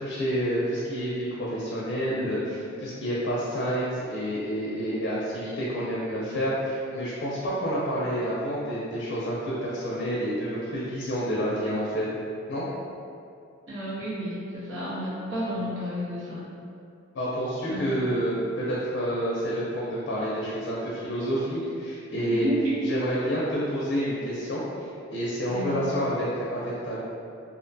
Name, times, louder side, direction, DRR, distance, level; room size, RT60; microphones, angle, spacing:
voice 1, 0.0-12.1 12.5-12.7 17.1-22.5 22.8-27.0, equal, 55° left, -7 dB, 0.4 m, -29 dB
voice 2, 13.7-16.5 17.7-17.9 22.3-22.8 25.5-25.8, equal, 70° right, -9 dB, 0.9 m, -31 dB
2.5 x 2.1 x 2.6 m, 2.5 s
head